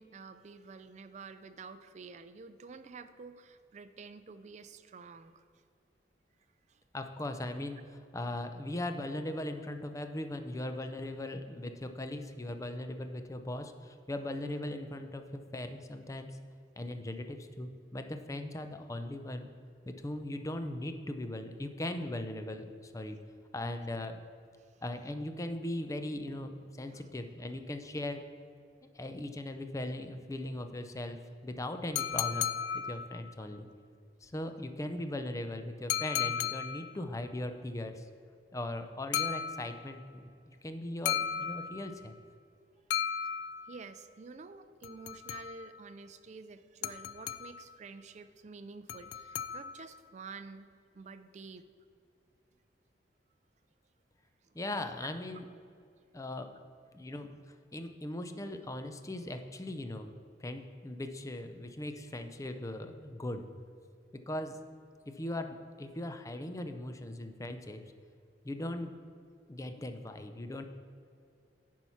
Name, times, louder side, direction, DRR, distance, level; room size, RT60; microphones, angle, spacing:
voice 1, 0.0-5.4 6.7-6.8 24.6-24.8 26.9-27.1 43.7-50.7 50.9-51.7 54.4-54.6, right 4 dB, 40° right, 10 dB, 0.4 m, -49 dB
voice 2, 6.9-7.8 8.1-16.4 16.8-19.5 19.9-23.2 23.5-24.2 24.8-26.5 26.8-28.2 28.9-31.2 31.4-32.5 32.9-33.7 34.2-38.1 38.5-42.2 54.5-55.4 56.1-56.5 56.9-57.3 57.7-60.1 60.4-63.5 64.1-64.6 65.1-67.8 68.4-68.9 69.5-70.6, left 1 dB, 20° left, 7 dB, 0.5 m, -39 dB
sound 1, 32.0-33.4 35.9-37.0 39.1-40.0 41.1-42.1 42.9-43.9 44.8-45.8 46.8-47.7 48.9-50.0, left 9 dB, 75° left, 0.3 m, -35 dB
9.7 x 4.6 x 5.7 m, 2.4 s
head